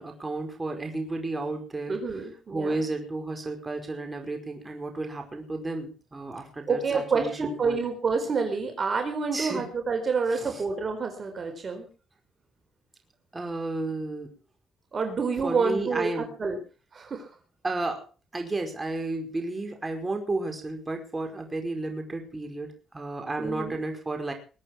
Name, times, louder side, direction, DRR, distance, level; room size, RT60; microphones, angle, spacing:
voice 1, 0.0-7.8 9.3-9.7 10.3-10.6 13.3-14.3 15.4-16.3 17.6-18.0 18.3-24.3, right 2 dB, 20° right, 3 dB, 5.1 m, -32 dB
voice 2, 1.9-2.8 6.7-11.9 14.9-16.1 16.4-16.6 16.9-17.3 23.4-23.8, right 4 dB, 40° right, 4 dB, 4.3 m, -28 dB
22.5 x 8.8 x 6.0 m, 0.38 s
cardioid pair, 90°, 0 cm